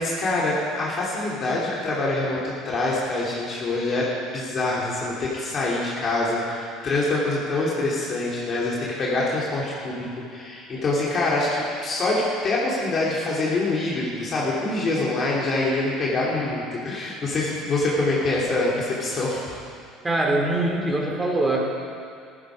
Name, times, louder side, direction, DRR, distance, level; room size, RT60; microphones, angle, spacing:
voice 1, 0.0-19.6, left 2 dB, 40° left, -6 dB, 2.9 m, -25 dB
voice 2, 20.0-21.6, right 2 dB, 15° right, -1 dB, 3.2 m, -23 dB
14.5 x 11.5 x 4.9 m, 2.3 s
hypercardioid pair, 65°, 0 cm